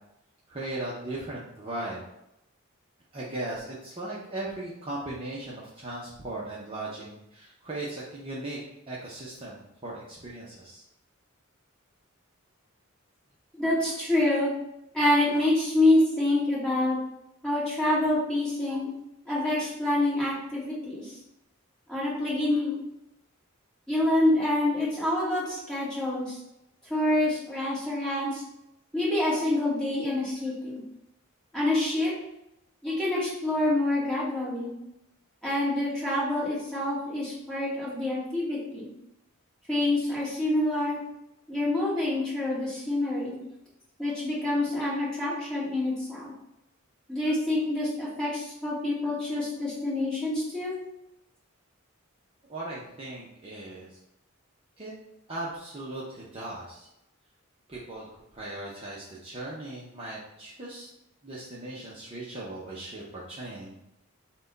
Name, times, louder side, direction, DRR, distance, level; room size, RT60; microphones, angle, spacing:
voice 1, 0.5-2.0 3.1-8.6 8.9-10.8 52.5-54.0 54.8-54.9 55.3-56.9 57.7-60.9 61.2-63.8, right 2 dB, 25° right, -6 dB, 0.7 m, -38 dB
voice 2, 13.5-14.5 14.9-17.0 17.4-18.9 19.2-21.2 21.9-22.7 23.9-26.4 26.9-28.4 28.9-30.8 31.5-32.1 32.8-34.7 35.4-38.9 39.7-41.0 41.5-43.4 44.0-46.3 47.1-50.7, left 1 dB, 5° left, -8 dB, 1.5 m, -27 dB
5.9 x 2.2 x 3.9 m, 0.85 s
head